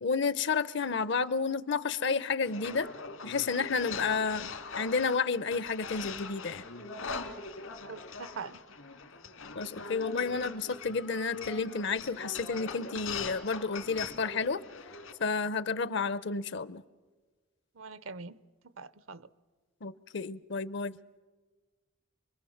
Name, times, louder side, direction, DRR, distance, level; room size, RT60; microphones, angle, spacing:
voice 1, 0.0-2.9 3.2-6.6 9.5-14.6 15.2-16.8 19.8-20.9, left 4 dB, 55° left, 0.7 m, -31 dB
sound 1, 2.5-15.1, left 4 dB, 75° left, 2.4 m, -42 dB
voice 2, 7.8-8.6 17.8-18.4 18.8-19.3, right 4 dB, 70° right, 0.8 m, -43 dB
28.0 x 22.5 x 7.2 m
head